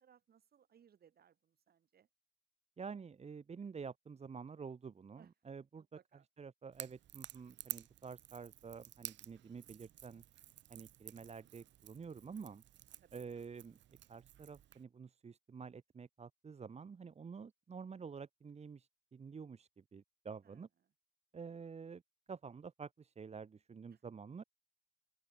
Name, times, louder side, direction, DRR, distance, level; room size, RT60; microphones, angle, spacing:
voice 1, 0.0-2.1 5.2-5.3 5.8-6.3 13.0-13.3 20.4-20.6 23.9-24.0, right 8 dB, 50° right, 6.8 m, -67 dB
voice 2, 2.8-5.9 6.4-10.2 10.7-12.6 13.1-13.8 14.1-20.7 21.3-22.0 22.3-24.4, right 5 dB, 35° right, 2.4 m, -49 dB
Crackle / Crack, 6.7-14.8, right 12 dB, 70° right, 1.5 m, -52 dB
open air
cardioid pair, 125°, 20 cm